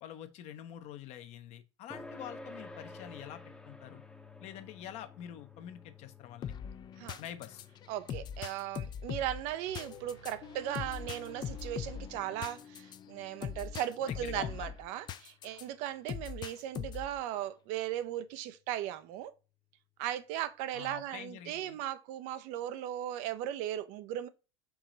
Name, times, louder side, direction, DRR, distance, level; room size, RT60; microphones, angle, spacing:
voice 1, 0.0-4.0 4.4-6.6 7.2-7.7 14.1-14.7 20.7-21.8, left 10 dB, 50° left, 0.8 m, -46 dB
sound 1, 1.9-16.8, left 3 dB, 5° left, 0.7 m, -54 dB
sound 2, 6.4-15.6 16.1-17.2, left 8 dB, 30° left, 0.4 m, -41 dB
voice 2, 7.9-19.3 20.0-24.3, right 12 dB, 55° right, 0.5 m, -37 dB
sound 3, 9.7-12.6, right 6 dB, 90° right, 0.8 m, -56 dB
4.7 x 3.0 x 3.8 m
hypercardioid pair, 85°, 14 cm